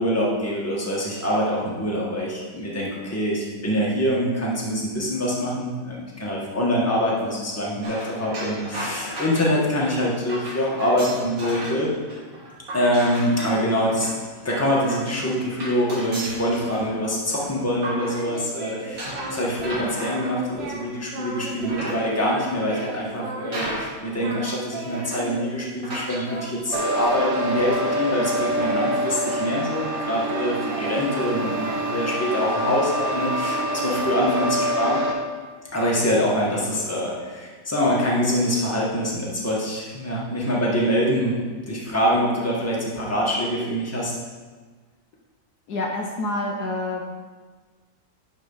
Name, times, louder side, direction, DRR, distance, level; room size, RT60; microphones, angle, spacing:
voice 1, 0.0-11.9 12.7-14.1 14.4-35.0 35.7-44.1, equal, 10° left, -5 dB, 1.6 m, -24 dB
sound 1, 7.8-11.8 12.1-18.5 19.0-21.0 21.5-22.4 23.1-23.2 23.5-24.1 24.4-24.5 25.0-25.4 25.8-26.3, right 1 dB, 75° right, 3.1 m, -35 dB
Singing, 18.0-19.9 20.1-20.9 21.1-21.9 22.1-23.9 24.2-25.7 26.3-29.9 30.2-34.6, right 3 dB, 90° right, 1.9 m, -36 dB
sound 2, 26.7-35.1, right 1 dB, 55° right, 1.3 m, -26 dB
voice 2, 45.7-47.0, left 2 dB, 65° left, 0 dB, 1.4 m, -27 dB
10.5 x 4.5 x 5.6 m, 1.4 s
omnidirectional pair, 1.9 m